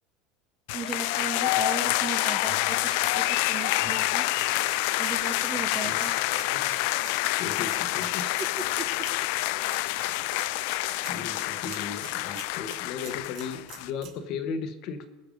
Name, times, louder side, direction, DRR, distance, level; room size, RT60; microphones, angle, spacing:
sound 1, 0.7-13.9, left 17 dB, 70° left, 0.4 m, -27 dB
voice 1, 0.7-4.2 5.0-6.1, right 6 dB, 25° right, 9 dB, 0.9 m, -37 dB
sound 2, 1.8-3.3 3.7-5.2 5.5-8.0, right 3 dB, 80° right, 4.3 m, -52 dB
sound 3, 2.6-14.1, right 9 dB, 55° right, 2.2 m, -49 dB
voice 2, 7.4-8.5 11.1-15.1, left 5 dB, 50° left, 8 dB, 1.3 m, -36 dB
20.0 x 6.8 x 5.3 m, 1.1 s
supercardioid pair, 145°, 0 cm